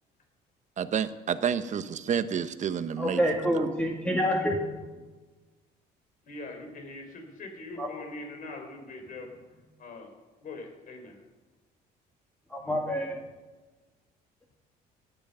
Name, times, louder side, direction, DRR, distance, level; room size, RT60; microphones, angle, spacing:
voice 1, 0.8-3.2 3.5-3.7, right 8 dB, 45° right, 12 dB, 1.0 m, -29 dB
voice 2, 3.0-4.7 7.8-7.9 12.5-13.2, equal, 10° left, -1 dB, 2.0 m, -27 dB
voice 3, 6.2-9.3 9.8-10.1 10.4-11.2, left 2 dB, 55° left, 3 dB, 4.3 m, -42 dB
18.0 x 10.5 x 5.6 m, 1.2 s
cardioid pair, 110°, 17 cm